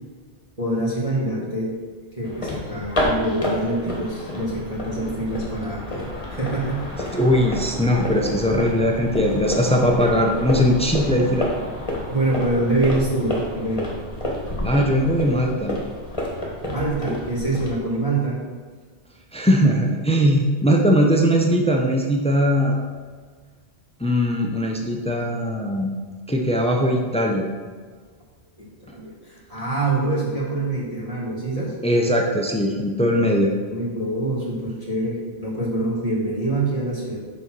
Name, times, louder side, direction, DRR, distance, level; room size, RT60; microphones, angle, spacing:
voice 1, 0.6-1.7 2.2-7.1 12.1-13.9 16.6-18.4 28.8-31.7 33.6-37.2, right 2 dB, 30° right, -8 dB, 2.1 m, -25 dB
sound 1, 2.2-17.8, left 1 dB, 30° left, 1.5 m, -29 dB
voice 2, 7.1-11.5 14.6-15.8 19.3-22.9 24.0-25.9 26.3-27.5 31.8-33.5, equal, 5° left, 1 dB, 0.6 m, -20 dB
6.9 x 4.1 x 6.2 m, 1.5 s
omnidirectional pair, 1.1 m